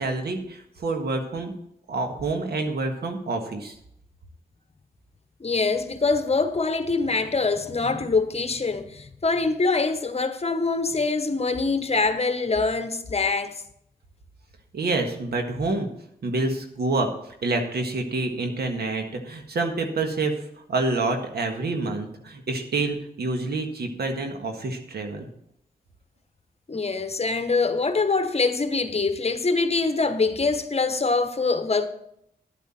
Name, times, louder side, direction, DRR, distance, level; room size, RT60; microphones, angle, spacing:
voice 1, 0.0-1.5 1.9-3.8 14.7-15.9 16.2-17.1 17.4-20.3 20.7-25.3, right 3 dB, 80° right, 1.6 m, -27 dB
voice 2, 5.4-13.6 26.7-31.9, left 3 dB, 40° left, 1.1 m, -24 dB
11.0 x 8.6 x 4.3 m
cardioid pair, 45°, 16 cm